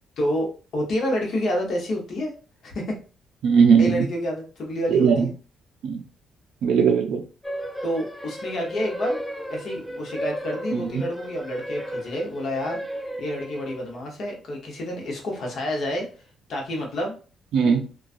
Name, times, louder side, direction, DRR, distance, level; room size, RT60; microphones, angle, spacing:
voice 1, 0.2-2.3 2.6-3.0 3.8-5.3 7.8-9.2 9.5-12.8 13.2-16.1 16.5-17.2, equal, 65° left, 1 dB, 0.9 m, -28 dB
voice 2, 3.4-4.1 4.9-5.3 5.8-6.0 6.6-7.2 10.7-11.0 17.5-17.8, right 6 dB, 80° right, 2 dB, 0.4 m, -19 dB
sound 1, 7.4-14.0, equal, 5° left, 0.5 m, -34 dB
2.3 x 2.2 x 2.5 m, 0.35 s
cardioid pair, 90°, 0 cm